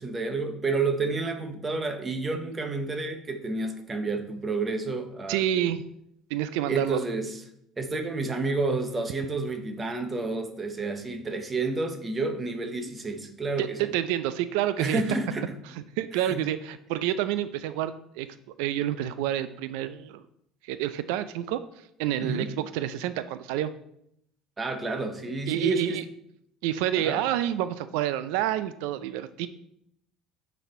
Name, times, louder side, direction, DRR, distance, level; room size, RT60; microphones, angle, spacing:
voice 1, 0.0-5.7 6.7-7.4 7.8-13.8 14.8-15.5 16.1-16.4 22.2-22.5 24.6-26.0 27.0-27.2, right 3 dB, 15° right, 6 dB, 0.7 m, -30 dB
voice 2, 5.3-5.8 6.3-7.0 13.6-15.0 15.7-18.3 18.6-20.2 20.6-21.6 22.0-23.7 25.5-26.0 26.6-29.5, right 12 dB, 80° right, 13 dB, 0.4 m, -28 dB
8.1 x 4.2 x 4.3 m, 0.75 s
cardioid pair, 175°, 0 cm